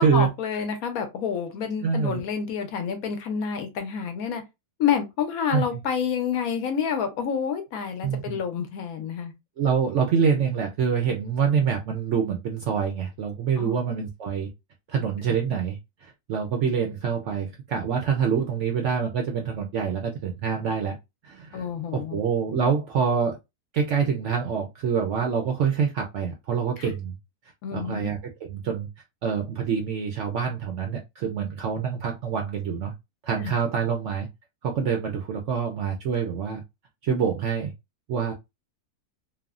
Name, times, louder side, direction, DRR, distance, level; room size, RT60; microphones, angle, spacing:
voice 1, 0.0-4.4 4.8-9.3 13.6-13.8 21.5-22.2 27.6-28.1 33.4-33.5, left 7 dB, 70° left, 1.1 m, -28 dB
voice 2, 1.8-2.2 5.5-5.6 8.0-8.4 9.6-14.5 14.9-21.0 21.2-23.4 23.7-27.2 27.7-28.9 29.2-32.9 33.2-34.3 34.6-36.6 37.0-37.7 38.1-38.3, right 6 dB, 70° right, 0.7 m, -26 dB
3.3 x 2.1 x 2.3 m
omnidirectional pair, 1.7 m